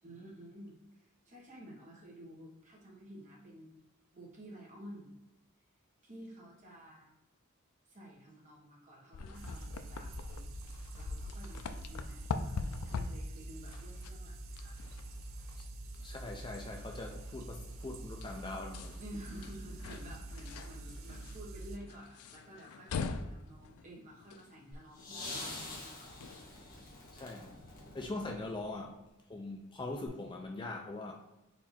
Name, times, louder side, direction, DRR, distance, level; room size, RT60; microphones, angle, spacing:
voice 1, 0.0-3.8 4.1-5.2 6.0-7.1 7.9-10.6 10.9-12.5 12.8-14.7 19.0-26.3, right 1 dB, 35° right, -3 dB, 1.3 m, -52 dB
sound 1, 9.1-26.5, left 4 dB, 80° left, 0.4 m, -44 dB
sound 2, 9.3-21.8, right 2 dB, 60° right, 0.4 m, -46 dB
voice 2, 16.0-19.0 27.1-27.6 27.9-29.0 29.3-31.1, left 2 dB, 20° left, 1 dB, 0.4 m, -42 dB
sound 3, 25.0-28.9 30.1-30.2, left 2 dB, 40° left, 1.2 m, -46 dB
4.3 x 2.8 x 4.3 m, 0.95 s
head